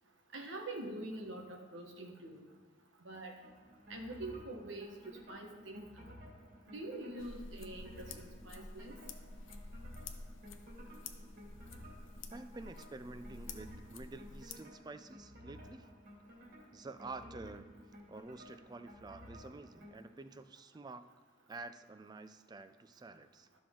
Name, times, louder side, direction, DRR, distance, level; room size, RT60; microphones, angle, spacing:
voice 1, 0.3-2.5 3.0-3.3 3.9-6.1 6.7-9.0, right 2 dB, 85° right, 2 dB, 1.3 m, -45 dB
sound 1, 3.4-20.0, equal, 60° right, 2.5 m, -55 dB
sound 2, 7.2-14.5, left 3 dB, 90° left, 0.7 m, -50 dB
voice 2, 12.3-15.9 16.7-17.7 18.1-21.0 21.5-23.5, right 3 dB, 20° right, 11 dB, 0.4 m, -49 dB
13.5 x 6.0 x 3.8 m, 1.3 s
head